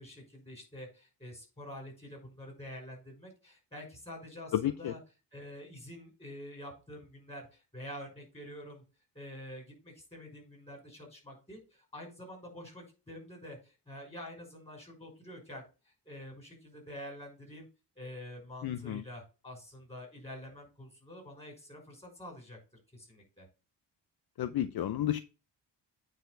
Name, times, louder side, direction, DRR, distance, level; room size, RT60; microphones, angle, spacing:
voice 1, 0.0-5.0 5.3-8.8 9.1-17.7 18.0-22.6 22.9-23.5, left 1 dB, 15° left, 0 dB, 5.5 m, -47 dB
voice 2, 4.5-4.9 18.6-19.0 24.4-25.2, left 11 dB, 60° left, 12 dB, 0.6 m, -31 dB
9.3 x 4.0 x 5.3 m, 0.31 s
wide cardioid pair, 130°, 43 cm